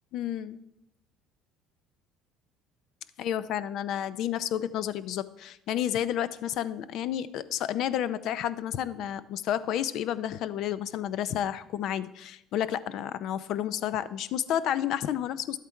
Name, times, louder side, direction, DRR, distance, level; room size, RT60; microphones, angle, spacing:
voice 1, 0.1-0.6 3.2-15.6, left 10 dB, 65° left, 15 dB, 0.6 m, -31 dB
12.0 x 8.2 x 4.5 m, 0.87 s
supercardioid pair, 95°, 0 cm